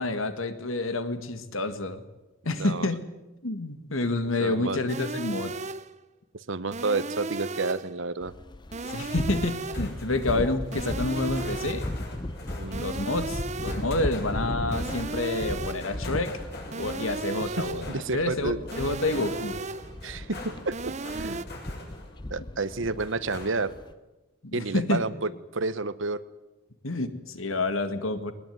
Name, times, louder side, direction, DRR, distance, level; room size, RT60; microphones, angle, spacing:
voice 1, 0.0-2.0 2.5-3.0 3.4-5.5 8.9-11.9 12.7-16.4 16.8-19.6 24.4-25.0 26.8-28.3, left 2 dB, 80° left, 10 dB, 2.0 m, -29 dB
voice 2, 2.6-2.9 4.4-4.8 6.3-8.3 12.6-12.8 17.5-18.6 20.0-21.4 22.3-23.7 24.5-26.2, right 3 dB, 70° right, 15 dB, 1.0 m, -30 dB
sound 1, 4.9-6.0 6.7-8.0 8.7-10.0 10.7-12.0 12.7-14.0 14.7-16.0 16.7-18.0 18.7-20.0 20.7-21.4, right 3 dB, 35° right, 0.7 m, -35 dB
sound 2, 8.2-23.9, left 1 dB, 20° left, 0.8 m, -36 dB
sound 3, 9.5-22.3 22.7-23.8, left 1 dB, 50° left, 7.1 m, -44 dB
21.0 x 20.0 x 9.5 m, 1.0 s
head